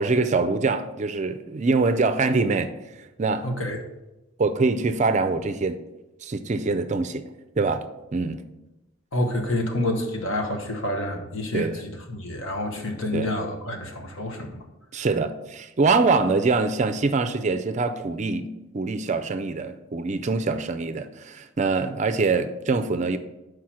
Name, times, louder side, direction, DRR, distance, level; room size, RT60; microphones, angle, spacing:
voice 1, 0.0-2.7 3.0-3.5 4.4-5.8 6.2-7.2 7.6-7.8 8.1-8.4 11.5-11.8 13.1-13.3 14.9-23.2, right 3 dB, 35° right, 0.4 m, -24 dB
voice 2, 3.4-3.8 9.1-14.6, left 1 dB, 70° left, 1.1 m, -28 dB
5.9 x 4.8 x 6.2 m
head